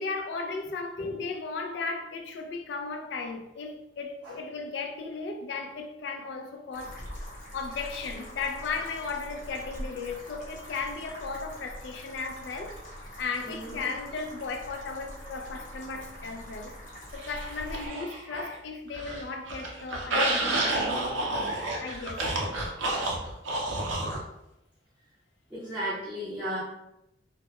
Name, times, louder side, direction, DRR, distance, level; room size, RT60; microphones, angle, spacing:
voice 1, 0.0-7.0 7.5-12.7 13.2-16.8 17.1-21.0 21.8-22.2, left 4 dB, 70° left, 0.3 m, -36 dB
sound 1, 6.7-17.9, equal, 45° left, 0.7 m, -43 dB
voice 2, 13.4-13.8 25.5-26.6, equal, 5° right, 0.5 m, -35 dB
sound 2, 17.2-18.6 18.9-24.2, right 1 dB, 80° right, 0.5 m, -30 dB
2.1 x 2.1 x 2.8 m
head